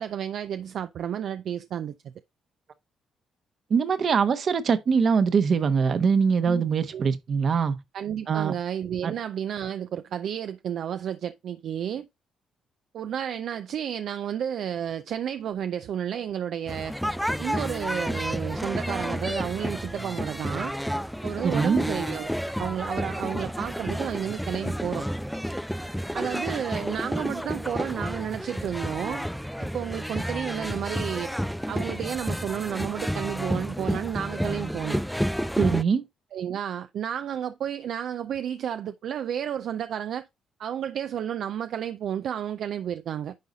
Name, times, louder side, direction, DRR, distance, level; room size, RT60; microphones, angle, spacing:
voice 1, 0.0-1.9 6.5-6.6 6.9-7.1 7.9-12.1 12.9-16.9 17.4-20.8 21.2-22.3 22.6-25.1 26.1-29.2 29.6-31.3 31.7-35.0 36.3-40.3 40.6-43.3, right 9 dB, 70° right, 0.4 m, -31 dB
voice 2, 3.7-7.8 8.3-8.5 9.0-9.1 21.4-21.8 35.6-36.0, right 6 dB, 50° right, 1.0 m, -23 dB
sound 1, 16.7-35.8, equal, ahead, 0.4 m, -31 dB
10.5 x 4.0 x 3.9 m
cardioid pair, 90°, 0 cm